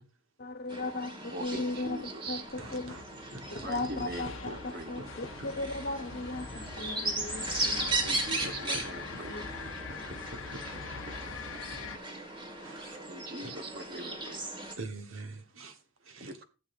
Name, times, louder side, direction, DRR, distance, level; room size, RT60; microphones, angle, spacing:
voice 1, 0.4-2.0 2.3-2.9 3.5-4.6 4.9-7.9 9.3-9.4, left 2 dB, 50° left, 1.2 m, -36 dB
sound 1, 0.7-14.8, right 2 dB, 25° right, 1.6 m, -37 dB
voice 2, 1.3-2.5 3.5-4.9 8.0-9.3 13.1-14.4 16.2-16.4, right 2 dB, 50° right, 1.0 m, -42 dB
sound 2, 2.5-12.0, left 5 dB, 65° left, 0.9 m, -43 dB
voice 3, 2.6-3.0 3.3-3.6 5.4-5.5 8.4-9.2 9.9-11.0 12.3-13.0 13.4-13.5 14.8-16.3, right 2 dB, 65° right, 1.3 m, -45 dB
15.0 x 7.5 x 2.6 m
head